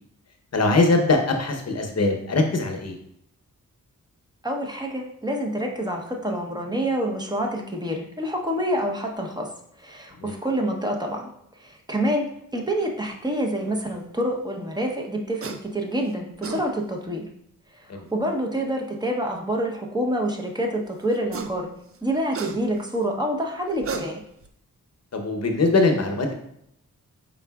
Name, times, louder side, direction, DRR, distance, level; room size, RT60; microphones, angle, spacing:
voice 1, 0.5-3.0 10.2-10.3 17.9-18.1 25.1-26.3, left 3 dB, 50° left, 4 dB, 0.8 m, -22 dB
voice 2, 4.4-9.5 9.8-11.3 11.6-12.3 12.5-17.2 17.7-21.7 22.0-24.2, right 1 dB, 10° right, 1 dB, 0.8 m, -27 dB
sound 1, 15.4-15.6 16.2-16.6 18.1-18.2 21.1-21.6 21.9-22.9 23.7-24.5, right 5 dB, 45° right, 0.4 m, -34 dB
4.7 x 3.7 x 2.3 m, 0.75 s
cardioid pair, 55°, 34 cm